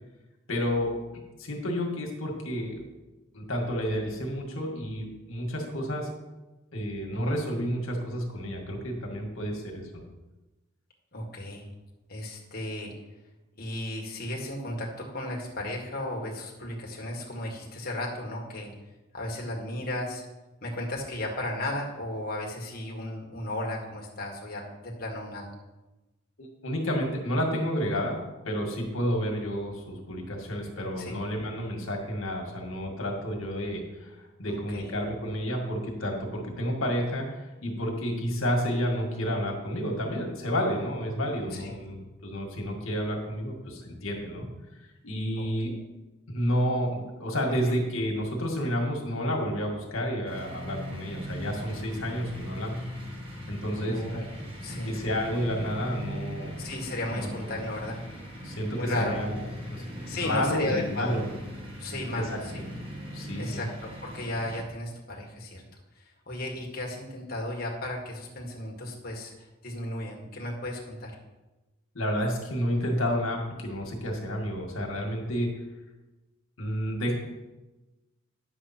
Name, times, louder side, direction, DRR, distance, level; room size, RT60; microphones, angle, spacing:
voice 1, 0.5-0.9 1.4-2.8 3.3-6.1 6.7-10.0 26.4-28.2 28.4-34.1 34.4-44.5 45.0-45.7 46.3-52.8 53.5-54.0 54.8-56.6 57.1-57.3 58.4-61.2 62.1-62.4 63.1-63.7 71.9-75.5 76.6-77.1, equal, 70° left, 1 dB, 2.0 m, -30 dB
voice 2, 11.1-11.7 12.1-12.9 13.6-18.7 19.1-20.2 20.6-25.5 31.0-31.2 34.5-34.9 41.5-41.8 45.4-45.8 47.5-47.8 53.8-55.0 56.6-58.0 58.8-59.2 60.1-61.2 61.8-62.6 63.4-65.6 66.0-69.3 69.6-71.2, left 1 dB, 45° left, -1 dB, 1.8 m, -35 dB
sound 1, 50.2-64.6, equal, 25° right, 1.6 m, -39 dB
10.0 x 7.2 x 4.3 m, 1.1 s
head